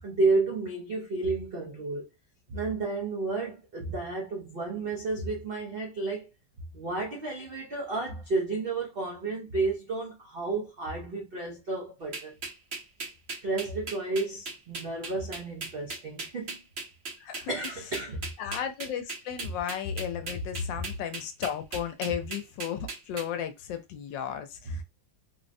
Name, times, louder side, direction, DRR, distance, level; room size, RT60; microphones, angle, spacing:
voice 1, 0.0-2.1 2.5-6.3 6.7-12.3 13.4-16.6 17.5-18.3 19.4-19.5, right 3 dB, 70° right, 0.5 m, -31 dB
sound 1, 12.1-23.3, right 3 dB, 45° right, 0.9 m, -37 dB
voice 2, 17.2-17.5 18.4-24.8, left 8 dB, 85° left, 1.3 m, -34 dB
3.6 x 2.0 x 2.5 m
omnidirectional pair, 1.9 m